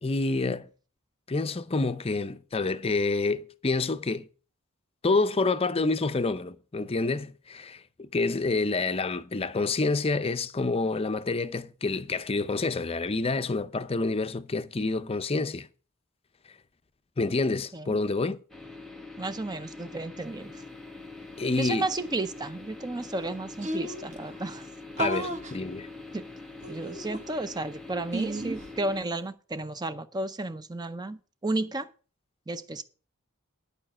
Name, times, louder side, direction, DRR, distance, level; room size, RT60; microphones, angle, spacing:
voice 1, 0.0-0.7 1.3-4.3 5.0-15.7 17.2-18.4 21.4-21.9 25.0-25.9, left 3 dB, 25° left, 0.5 m, -28 dB
sound 1, 18.5-29.0, left 3 dB, ahead, 1.3 m, -44 dB
voice 2, 19.2-20.6 21.6-24.7 26.1-26.2 26.7-31.9 32.5-32.8, right 2 dB, 20° right, 0.5 m, -33 dB
sound 2, 22.9-23.0 23.2-23.3 23.6-24.2 25.0-25.5 26.6-27.5 28.1-28.7, right 1 dB, 35° right, 1.4 m, -33 dB
11.0 x 5.0 x 7.5 m
head